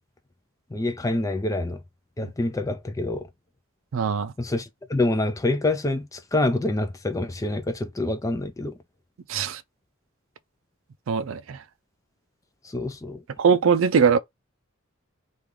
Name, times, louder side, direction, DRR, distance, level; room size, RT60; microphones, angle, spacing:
voice 1, 0.7-1.8 2.2-3.3 4.4-8.8 12.6-13.2, left 2 dB, 15° left, 0.3 m, -26 dB
voice 2, 3.9-4.3 9.3-9.6 11.1-11.6 13.4-14.2, right 6 dB, 70° right, 0.4 m, -21 dB
3.2 x 2.4 x 3.5 m
head